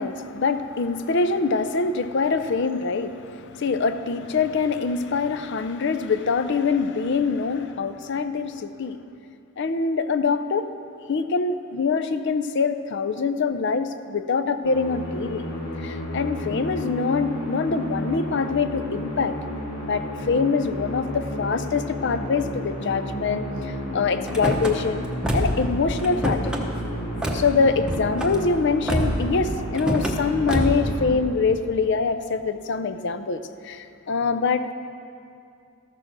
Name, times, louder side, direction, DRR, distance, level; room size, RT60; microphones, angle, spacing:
voice 1, 0.0-9.0 9.6-10.7 11.1-15.5 15.8-19.3 19.8-25.0 25.3-26.5 27.3-34.7, left 4 dB, 50° left, 11 dB, 0.5 m, -24 dB
Musical instrument, 14.6-31.8, equal, 80° left, 2.0 m, -32 dB
Car / Slam, 24.3-24.7 25.2-25.7 26.0-26.6 27.2-27.4 27.8-28.4 28.9-29.3 29.7-30.2 30.5-30.9, equal, 5° right, 0.8 m, -26 dB
13.5 x 6.7 x 6.1 m, 2.5 s
head